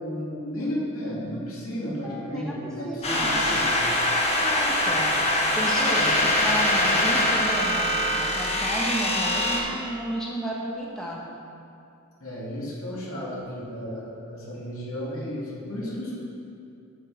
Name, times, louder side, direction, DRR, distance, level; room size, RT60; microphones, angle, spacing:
voice 1, 0.0-3.8 5.9-6.3 12.2-16.1, equal, 70° left, -5 dB, 2.6 m, -33 dB
voice 2, 2.0-3.4 4.4-5.2 5.6-11.3, equal, 5° left, -4 dB, 1.1 m, -32 dB
sound 1, 3.0-9.6, left 1 dB, 30° left, 1.4 m, -23 dB
9.8 x 5.6 x 6.8 m, 2.6 s
head